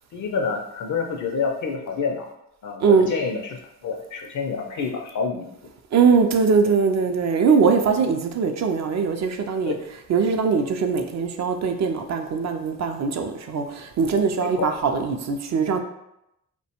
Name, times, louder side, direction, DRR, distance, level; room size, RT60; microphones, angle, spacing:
voice 1, 0.1-2.3 2.6-5.5 9.7-9.8 14.4-14.7, left 5 dB, 50° left, 1 dB, 0.4 m, -28 dB
voice 2, 2.8-3.1 5.9-9.8 10.1-15.8, right 5 dB, 45° right, 5 dB, 0.4 m, -21 dB
2.3 x 2.2 x 2.8 m, 0.83 s
supercardioid pair, 50°, 40 cm